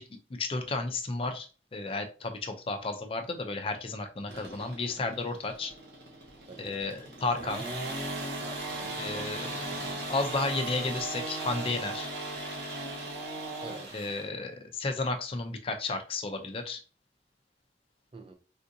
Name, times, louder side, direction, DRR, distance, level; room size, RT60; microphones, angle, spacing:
voice 1, 0.0-5.7 6.6-7.6 9.0-12.1 13.9-16.8, left 3 dB, 30° left, 0.4 m, -33 dB
sound 1, 4.3-14.3, right 2 dB, 80° right, 1.0 m, -38 dB
voice 2, 6.5-6.8 8.4-9.6 13.6-14.1 18.1-18.3, right 3 dB, 30° right, 0.4 m, -47 dB
3.5 x 2.6 x 2.6 m
head